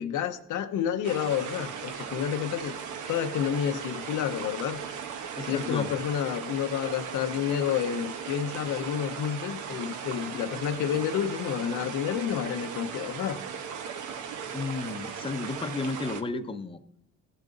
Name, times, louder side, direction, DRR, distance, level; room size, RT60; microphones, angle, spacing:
voice 1, 0.0-2.8 3.1-4.8 5.4-13.4, left 9 dB, 85° left, 8 dB, 0.8 m, -30 dB
sound 1, 1.0-16.2, right 7 dB, 80° right, 1.0 m, -38 dB
voice 2, 5.4-5.9 14.5-16.8, left 3 dB, 20° left, 8 dB, 0.7 m, -33 dB
15.5 x 7.3 x 3.9 m, 0.82 s
cardioid pair, 90°, 30 cm